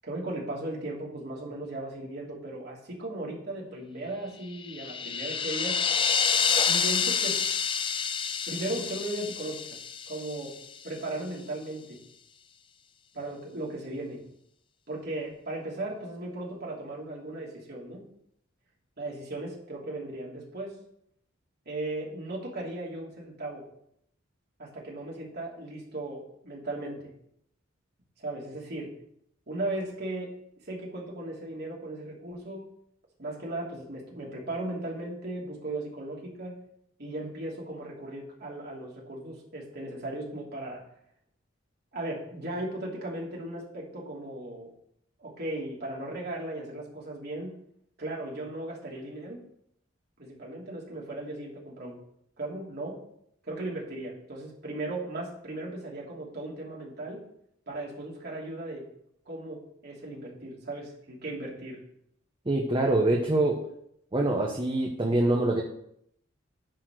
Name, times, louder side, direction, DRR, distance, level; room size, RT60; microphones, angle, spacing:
voice 1, 0.0-5.9 6.4-7.4 8.5-9.8 10.1-10.5 10.8-12.0 13.1-14.2 14.9-18.0 19.0-20.7 21.6-23.6 24.6-27.1 28.2-28.9 29.5-30.3 30.6-32.6 33.2-36.5 37.0-40.8 41.9-44.7 45.2-47.5 48.0-49.4 50.2-52.0 52.4-53.0 53.4-57.2 57.7-58.9 59.3-61.8, right 2 dB, 55° right, -3 dB, 2.9 m, -37 dB
sound 1, 4.5-10.7, left 6 dB, 25° left, 0.5 m, -28 dB
voice 2, 62.5-63.6 64.1-65.6, right 2 dB, 25° right, 0 dB, 1.0 m, -25 dB
10.0 x 4.3 x 6.4 m, 0.71 s
head